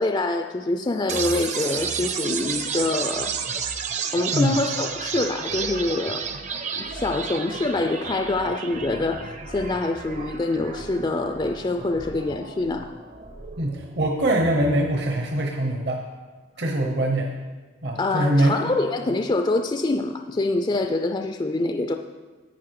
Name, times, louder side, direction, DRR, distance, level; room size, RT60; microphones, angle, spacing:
voice 1, 0.0-3.3 4.1-6.3 6.8-12.9 18.0-22.0, left 2 dB, 25° left, 6 dB, 0.4 m, -25 dB
sound 1, 1.1-15.1, right 6 dB, 40° right, 0.6 m, -32 dB
voice 2, 13.6-16.0 16.6-17.4 17.8-18.6, right 1 dB, 60° right, 2 dB, 1.0 m, -23 dB
10.5 x 8.8 x 4.7 m, 1.3 s
head